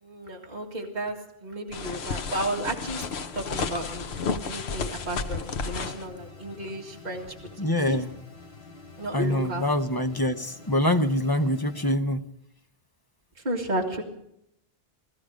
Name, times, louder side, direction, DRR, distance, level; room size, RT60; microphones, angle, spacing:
voice 1, 0.0-3.0 3.3-4.1 4.4-7.3 7.8-8.0 9.0-9.7 13.4-14.0, right 1 dB, 45° right, -2 dB, 2.1 m, -33 dB
sound 1, 1.7-6.0, left 5 dB, 85° left, 1.1 m, -32 dB
sound 2, 2.8-12.0, left 3 dB, 70° left, 1.5 m, -48 dB
voice 2, 7.6-8.2 9.1-12.2, left 1 dB, 25° left, 6 dB, 0.9 m, -25 dB
19.5 x 14.0 x 5.1 m, 0.76 s
omnidirectional pair, 1.0 m